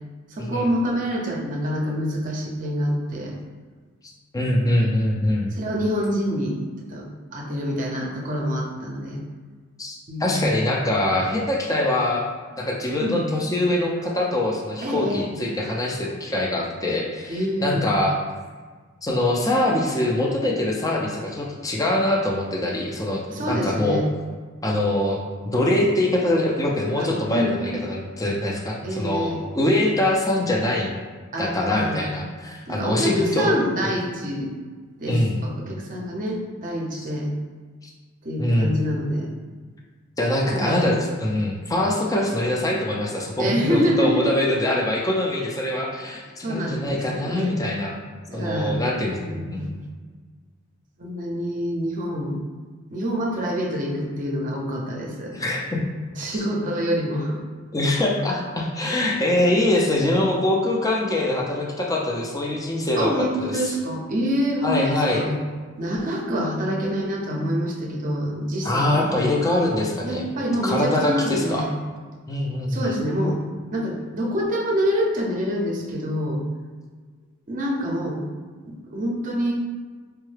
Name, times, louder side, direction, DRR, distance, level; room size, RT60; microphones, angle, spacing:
voice 1, 0.3-3.4 5.5-6.6 6.9-7.1 7.3-9.2 10.1-10.5 13.0-13.2 14.8-15.2 17.3-17.9 23.3-24.1 27.0-27.7 28.8-29.4 31.3-32.0 32.7-34.5 35.0-37.3 38.2-39.3 40.5-40.9 43.4-44.2 46.4-47.6 48.3-48.8 49.2-49.8 51.0-52.4 52.9-55.4 56.2-57.4 63.0-65.4 65.8-69.1 70.0-71.7 72.7-73.4 73.7-76.4 77.5-78.2 78.7-79.5, equal, 40° right, -1 dB, 0.6 m, -26 dB
voice 2, 4.3-5.5 9.8-12.2 12.6-18.2 19.0-24.0 24.6-25.2 25.5-30.9 31.4-33.6 33.8-33.9 35.1-35.5 36.9-37.1 37.8-37.9 38.4-38.8 40.2-48.0 48.3-49.7 55.3-55.8 56.3-56.4 57.7-63.1 63.4-63.7 64.6-65.2 68.6-70.3 70.6-71.7 72.3-72.9, left 1 dB, 15° left, -1 dB, 0.4 m, -23 dB
4.5 x 2.1 x 3.2 m, 1.5 s
head